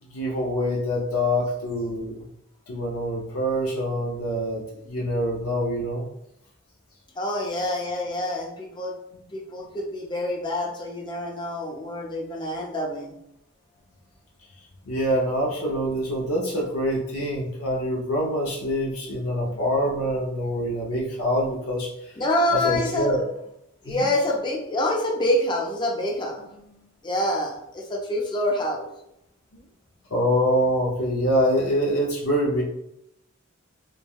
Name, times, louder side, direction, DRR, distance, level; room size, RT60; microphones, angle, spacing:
voice 1, 0.0-2.2 2.7-6.1 14.9-22.1 22.5-23.2 23.9-24.0 29.5-29.6 30.1-32.6, equal, 80° left, -4 dB, 0.6 m, -25 dB
voice 2, 7.2-9.0 9.3-13.1 19.4-19.6 22.2-23.2 23.8-28.9, left 1 dB, 20° left, 0 dB, 0.4 m, -27 dB
3.3 x 2.2 x 2.2 m, 0.80 s
head